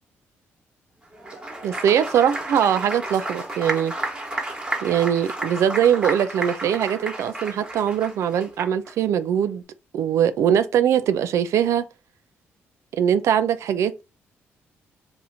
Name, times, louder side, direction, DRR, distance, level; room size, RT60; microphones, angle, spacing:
Applause, 1.1-8.9, right 2 dB, 20° right, 1.2 m, -32 dB
voice 1, 1.6-3.9 4.8-9.6 9.9-11.8 12.9-14.0, right 9 dB, 70° right, 0.3 m, -21 dB
2.7 x 2.5 x 4.2 m
supercardioid pair, 65°, 5 cm